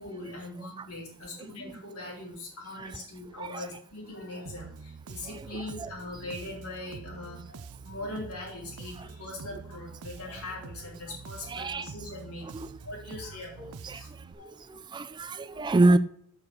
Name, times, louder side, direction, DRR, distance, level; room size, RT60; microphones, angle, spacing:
voice 1, 0.0-14.1 14.4-14.5 15.5-15.6, left 2 dB, 80° left, 3.8 m, -41 dB
Bass guitar, 4.5-14.3, right 5 dB, 90° right, 0.5 m, -46 dB
voice 2, 5.3-5.9 11.5-11.9 12.5-12.7 13.8-14.0 14.9-16.0, right 2 dB, 20° right, 0.3 m, -26 dB
7.4 x 6.2 x 4.8 m
head